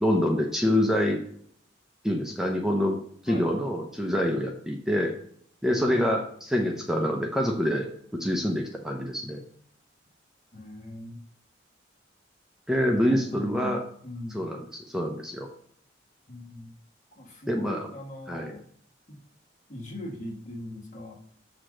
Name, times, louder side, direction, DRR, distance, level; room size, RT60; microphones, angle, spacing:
voice 1, 0.0-1.2 2.0-3.0 3.2-5.2 5.6-9.4 12.7-13.8 14.3-14.6 14.9-15.5 17.5-17.8 18.3-18.5, equal, 5° right, 1 dB, 0.7 m, -26 dB
voice 2, 5.8-6.1 10.5-11.2 12.8-14.4 16.3-16.7 17.1-18.6 19.1-19.2 19.7-21.1, left 1 dB, 40° left, 0 dB, 1.6 m, -39 dB
6.6 x 3.8 x 6.3 m, 0.62 s
head